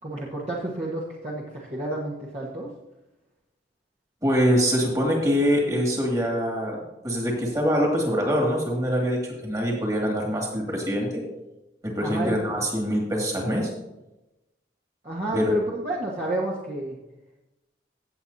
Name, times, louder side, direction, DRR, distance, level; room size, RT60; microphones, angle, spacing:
voice 1, 0.0-2.7 12.0-12.4 15.0-17.0, right 1 dB, 35° right, -5 dB, 1.4 m, -30 dB
voice 2, 4.2-11.2 11.8-13.7 15.3-15.5, equal, 20° right, -1 dB, 2.3 m, -24 dB
16.0 x 7.7 x 2.8 m, 0.97 s
head